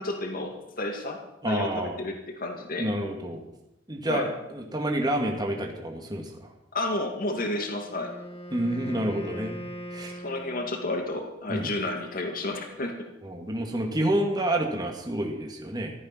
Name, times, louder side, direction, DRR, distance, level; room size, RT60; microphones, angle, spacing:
voice 1, 0.0-2.9 4.1-4.3 6.7-8.1 10.1-13.1, left 2 dB, 50° left, 3 dB, 2.2 m, -31 dB
voice 2, 1.4-2.0 2.8-3.4 3.9-6.5 8.5-9.6 9.9-10.2 11.5-11.7 13.2-15.9, right 1 dB, 25° right, 1 dB, 2.2 m, -29 dB
Wind instrument woodwind instrument, 7.8-11.1, equal, 35° left, 3.0 m, -40 dB
15.5 x 13.5 x 5.9 m, 0.89 s
head